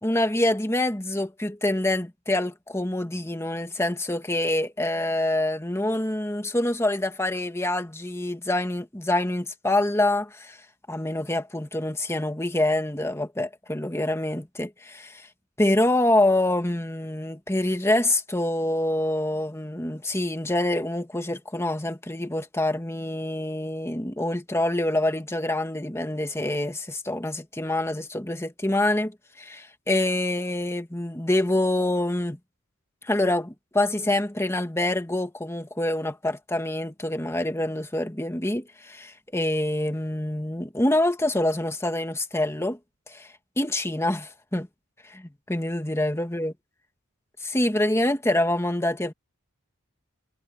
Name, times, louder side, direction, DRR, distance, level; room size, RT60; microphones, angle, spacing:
voice 1, 0.0-10.6 10.9-15.3 15.6-29.1 29.4-32.4 33.0-42.8 43.1-43.3 43.6-44.7 45.1-46.5 47.4-49.1, left 1 dB, 15° left, 1.8 m, -26 dB
head